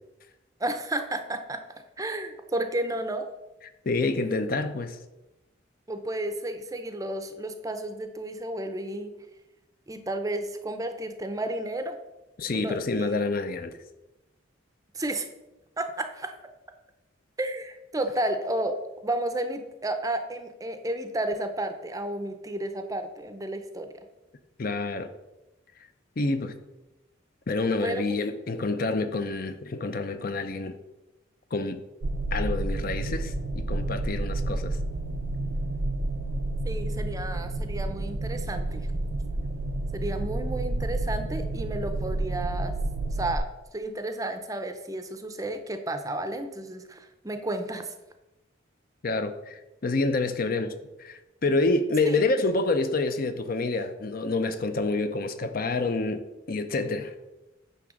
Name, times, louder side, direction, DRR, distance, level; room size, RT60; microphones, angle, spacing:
voice 1, 0.6-1.6 2.0-3.3 5.9-9.1 9.9-12.0 12.5-13.2 14.9-15.3 15.8-16.3 17.4-18.8 19.0-23.9 27.8-28.0 36.6-38.9 39.9-42.7 43.1-47.9 52.0-52.2, right 1 dB, 15° right, 8 dB, 0.6 m, -32 dB
voice 2, 3.9-5.0 12.4-13.7 24.6-25.1 26.2-26.5 27.5-30.7 31.5-31.8 32.3-34.8 49.0-50.7 51.0-57.1, left 3 dB, 45° left, 9 dB, 0.6 m, -28 dB
sound 1, 32.0-43.4, right 2 dB, 75° right, 0.6 m, -30 dB
10.0 x 3.4 x 6.2 m, 1.0 s
head